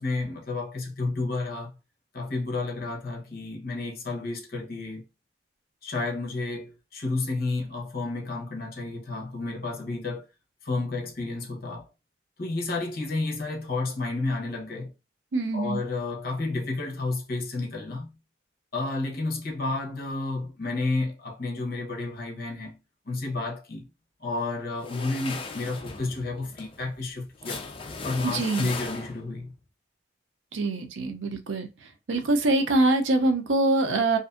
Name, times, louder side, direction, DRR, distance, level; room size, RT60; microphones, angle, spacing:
voice 1, 0.0-1.8 2.1-5.0 5.8-10.3 10.6-11.9 12.4-14.9 15.5-18.1 18.7-22.8 23.1-23.9 24.2-27.6 28.0-29.5, left 3 dB, 50° left, 0.8 m, -31 dB
voice 2, 15.3-15.8 28.2-28.7 30.5-34.2, right 2 dB, 80° right, 0.5 m, -24 dB
sound 1, 24.8-29.4, left 4 dB, 30° left, 0.3 m, -38 dB
2.6 x 2.5 x 2.4 m
head